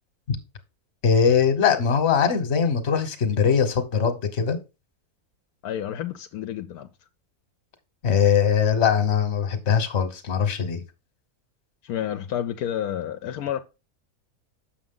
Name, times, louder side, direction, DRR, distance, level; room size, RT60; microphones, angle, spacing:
voice 1, 1.0-4.6 8.0-10.8, left 7 dB, 50° left, 1.3 m, -21 dB
voice 2, 5.6-6.9 11.8-13.6, left 10 dB, 80° left, 1.1 m, -30 dB
7.0 x 6.2 x 3.7 m
omnidirectional pair, 1.6 m